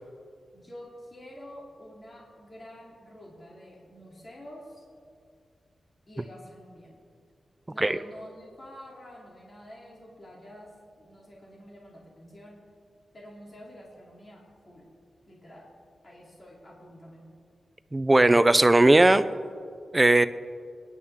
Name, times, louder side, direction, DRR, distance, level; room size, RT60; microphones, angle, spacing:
voice 1, 0.5-4.8 6.1-7.0 7.7-10.7 11.0-12.6 13.1-14.9 15.3-15.7 16.0-17.3, equal, 35° left, -3 dB, 3.0 m, -48 dB
voice 2, 17.9-19.2 19.9-20.3, right 2 dB, 20° right, 13 dB, 0.5 m, -18 dB
25.0 x 11.0 x 3.7 m, 2.2 s
wide cardioid pair, 105°, 0 cm